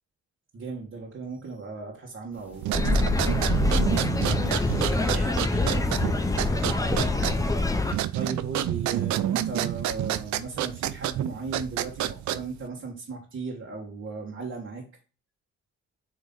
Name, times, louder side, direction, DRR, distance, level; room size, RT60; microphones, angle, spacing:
voice 1, 0.5-4.4 4.7-6.5 8.1-14.8, right 4 dB, 45° right, -3 dB, 1.6 m, -37 dB
sound 1, 2.3-8.0, left 1 dB, 5° right, 1.6 m, -37 dB
sound 2, 2.6-12.7, right 13 dB, 70° right, 0.5 m, -29 dB
sound 3, 2.7-7.9, left 2 dB, 10° left, 0.7 m, -25 dB
7.6 x 3.1 x 4.0 m, 0.36 s
cardioid pair, 90°, 30 cm